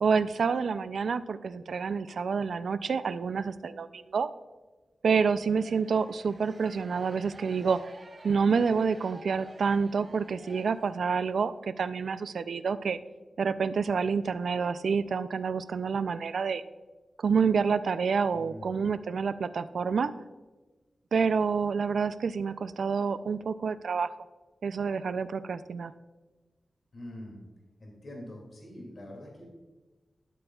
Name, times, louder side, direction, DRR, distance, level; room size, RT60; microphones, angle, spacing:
voice 1, 0.0-4.3 5.0-7.9 8.2-13.0 13.4-16.6 17.2-20.1 21.1-24.1 24.6-25.9, right 5 dB, 80° right, 14 dB, 0.4 m, -28 dB
sound 1, 5.4-11.3, right 2 dB, 45° right, 1.2 m, -52 dB
voice 2, 18.3-18.8 26.9-27.4 27.8-29.5, left 1 dB, 55° left, 0 dB, 2.4 m, -44 dB
12.5 x 7.9 x 2.3 m, 1.2 s
wide cardioid pair, 105°, 0 cm